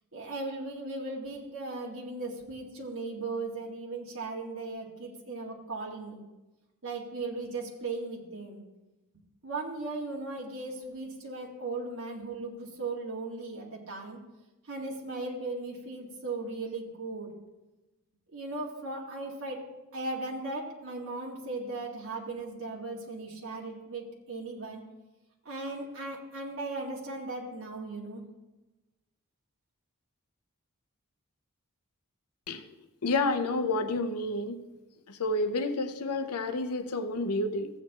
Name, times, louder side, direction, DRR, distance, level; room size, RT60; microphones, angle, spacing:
voice 1, 0.1-6.3 6.8-8.6 9.4-14.2 14.6-17.4 18.3-19.6 19.9-24.8 25.4-28.2, right 3 dB, 65° right, -3 dB, 2.0 m, -37 dB
voice 2, 33.0-34.6 35.1-37.7, left 2 dB, 90° left, 9 dB, 0.8 m, -29 dB
15.5 x 8.3 x 3.0 m, 1.1 s
head